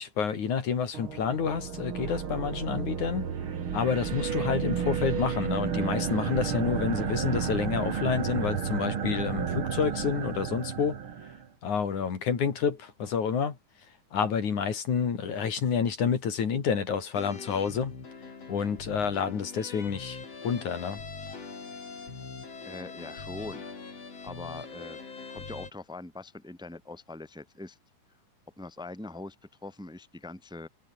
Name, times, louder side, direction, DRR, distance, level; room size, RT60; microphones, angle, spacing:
voice 1, 0.0-3.3 3.7-11.0 11.6-13.6 14.1-17.9 18.5-21.0, left 6 dB, 65° left, 4.3 m, -29 dB
sound 1, 0.9-11.5, right 7 dB, 45° right, 2.4 m, -32 dB
sound 2, 17.1-25.7, left 4 dB, 50° left, 5.5 m, -42 dB
voice 2, 22.6-23.6 24.2-25.0 25.3-27.8 28.6-29.4 29.6-30.7, left 2 dB, ahead, 1.7 m, -42 dB
omnidirectional pair, 3.8 m